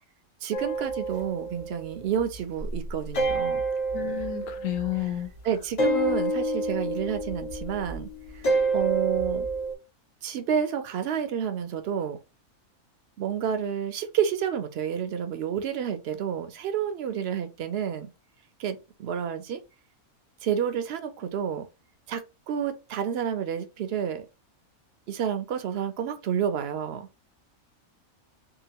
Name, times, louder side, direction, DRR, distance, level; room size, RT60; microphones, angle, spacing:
voice 1, 0.4-3.6 5.0-5.1 5.4-9.5 10.2-12.2 13.2-18.1 18.6-19.6 20.4-21.6 22.1-24.3 25.1-27.1, right 8 dB, 60° right, 0.6 m, -30 dB
sound 1, 0.5-2.3 2.6-5.2 5.8-9.7, right 2 dB, 40° left, 0.6 m, -28 dB
voice 2, 3.9-5.3, left 13 dB, 70° left, 0.9 m, -31 dB
2.8 x 2.4 x 2.8 m
omnidirectional pair, 1.5 m